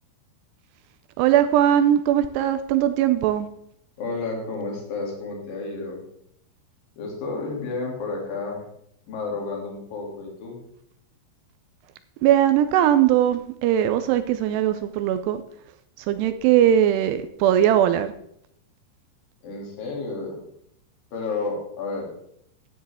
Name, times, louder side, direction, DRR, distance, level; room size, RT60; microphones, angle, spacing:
voice 1, 1.2-3.5 12.2-15.4 16.0-18.1, right 11 dB, 85° right, 2.4 m, -20 dB
voice 2, 4.0-6.0 7.0-8.6 9.1-10.6 19.4-20.4 21.1-22.1, left 3 dB, 55° left, 4.0 m, -31 dB
12.5 x 9.5 x 3.5 m
omnidirectional pair, 5.3 m